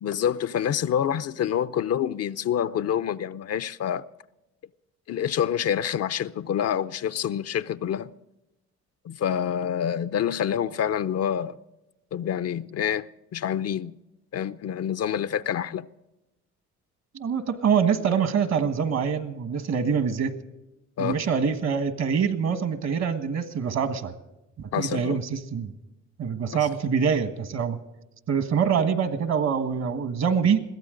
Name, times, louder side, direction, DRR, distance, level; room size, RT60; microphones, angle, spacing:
voice 1, 0.0-4.0 5.1-8.1 9.0-11.6 12.1-13.1 13.3-13.9 14.3-15.9 21.0-21.2 24.7-25.2, left 9 dB, 55° left, 0.6 m, -27 dB
voice 2, 17.1-20.3 21.0-24.1 24.6-25.7 26.2-27.8 28.3-30.6, right 6 dB, 60° right, 1.5 m, -25 dB
22.0 x 15.5 x 3.8 m
cardioid pair, 90°, 30 cm